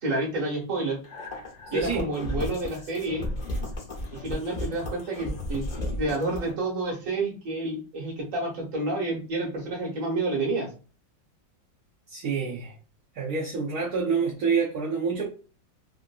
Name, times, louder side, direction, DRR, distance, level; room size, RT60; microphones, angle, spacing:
voice 1, 0.0-1.0 1.7-3.3 4.1-5.6 6.0-10.7, right 2 dB, 45° right, 1.4 m, -29 dB
sound 1, 1.0-6.5, left 1 dB, 45° left, 0.5 m, -34 dB
voice 2, 1.7-2.1 12.1-12.8 13.1-15.2, right 5 dB, 65° right, 1.0 m, -27 dB
3.6 x 2.5 x 2.3 m
omnidirectional pair, 2.1 m